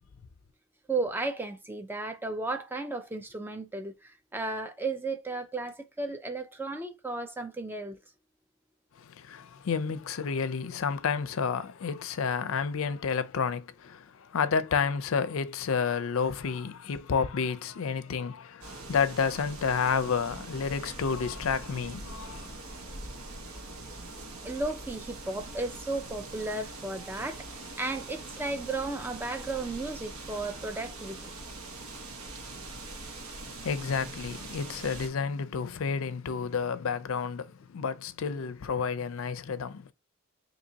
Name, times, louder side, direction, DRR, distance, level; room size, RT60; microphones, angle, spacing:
voice 1, 0.9-8.0 24.4-31.3, right 2 dB, 10° right, 0.5 m, -34 dB
voice 2, 9.0-22.5 33.6-39.9, left 6 dB, 70° left, 0.4 m, -30 dB
sound 1, 18.6-35.1, right 2 dB, 85° right, 0.9 m, -43 dB
3.9 x 2.8 x 2.7 m
head